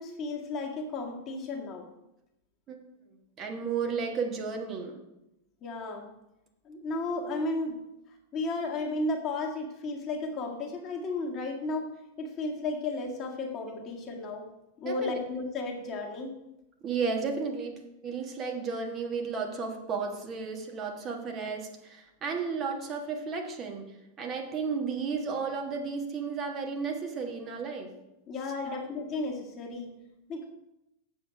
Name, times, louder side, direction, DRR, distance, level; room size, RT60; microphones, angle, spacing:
voice 1, 0.0-1.9 5.6-6.1 6.6-7.8 8.3-14.5 14.8-16.3 28.3-29.9 30.3-30.5, left 2 dB, 30° left, 1 dB, 1.7 m, -34 dB
voice 2, 3.4-5.0 14.9-15.2 16.8-23.9 24.2-27.9 28.7-28.8, right 5 dB, 30° right, 2 dB, 1.4 m, -33 dB
7.8 x 7.4 x 5.0 m, 0.90 s
figure-of-eight pair, 90°, 0 cm